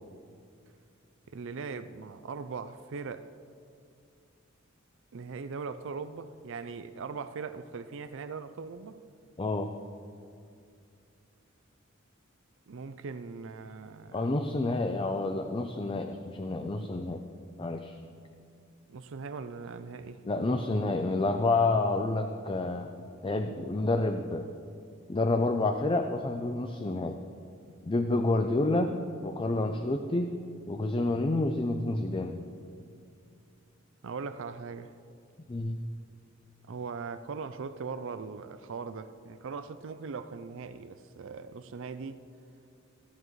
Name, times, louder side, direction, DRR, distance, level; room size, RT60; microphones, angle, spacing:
voice 1, 1.3-3.3 5.1-9.0 12.7-14.2 18.9-20.2 34.0-34.9 36.7-42.2, right 5 dB, 65° right, 0.5 m, -40 dB
voice 2, 9.4-9.7 14.1-17.2 17.6-18.0 20.2-22.9 23.2-24.5 25.1-27.2 27.8-28.9 29.2-30.3 30.7-32.4 35.5-35.8, left 2 dB, 25° left, 0.5 m, -29 dB
19.0 x 9.9 x 3.2 m
head